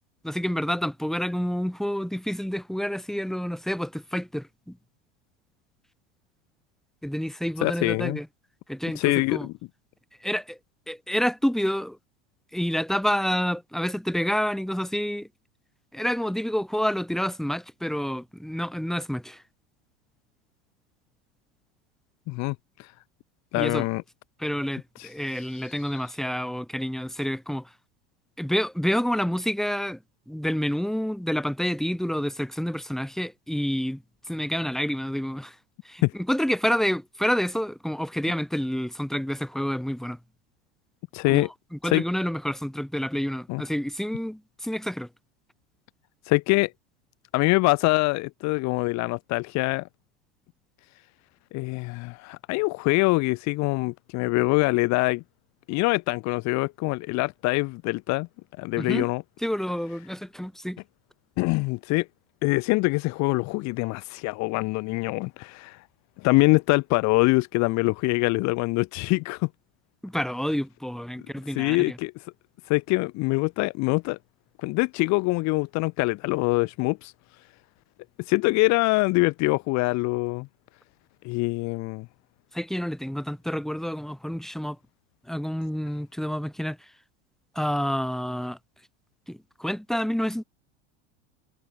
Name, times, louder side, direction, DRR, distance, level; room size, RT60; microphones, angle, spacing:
voice 1, 0.2-4.8 7.0-8.3 8.7-9.5 10.2-10.6 10.9-12.0 12.5-15.3 15.9-19.4 23.5-23.9 24.4-27.7 28.4-30.0 30.3-34.0 34.3-35.5 35.8-40.2 41.3-45.1 58.8-59.1 59.4-60.8 70.0-72.0 82.5-84.8 85.3-86.8 87.5-88.6 89.3-90.4, equal, ahead, 4.7 m, -28 dB
voice 2, 7.6-8.2 8.9-9.5 22.3-22.9 23.5-24.0 25.0-25.1 25.3-26.0 36.0-36.1 41.1-41.5 41.8-42.0 43.5-43.6 46.3-46.7 47.3-49.9 51.5-55.2 55.7-58.3 58.6-59.2 61.4-62.1 62.4-65.8 66.2-69.5 71.5-72.1 72.7-74.2 74.6-77.1 78.3-80.5 81.2-82.1, left 24 dB, 50° left, 1.3 m, -24 dB
supercardioid pair, 110°, 35 cm